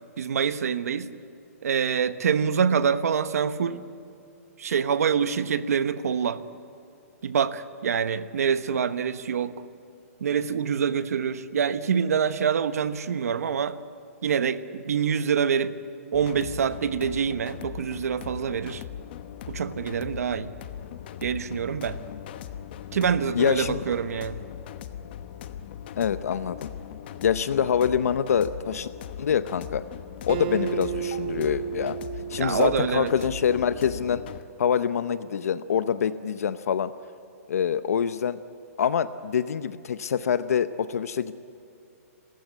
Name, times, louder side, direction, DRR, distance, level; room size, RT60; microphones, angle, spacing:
voice 1, 0.2-1.1 1.6-3.8 4.6-6.4 7.2-9.5 10.2-13.8 14.2-15.8 16.1-18.8 19.5-20.5 21.2-22.0 22.9-24.4 32.4-33.1, right 7 dB, 75° right, 12 dB, 1.2 m, -26 dB
sound 1, 16.1-34.4, left 10 dB, 40° left, 1.0 m, -40 dB
voice 2, 23.3-23.8 26.0-26.7 27.2-28.9 29.2-29.8 30.2-32.0 32.3-34.2 34.6-36.9 37.5-38.4 38.8-41.4, left 8 dB, 75° left, 13 dB, 0.8 m, -25 dB
Acoustic guitar, 30.3-33.7, right 10 dB, 35° right, 0.9 m, -33 dB
28.5 x 16.0 x 8.4 m, 2.7 s
hypercardioid pair, 165°, 8 cm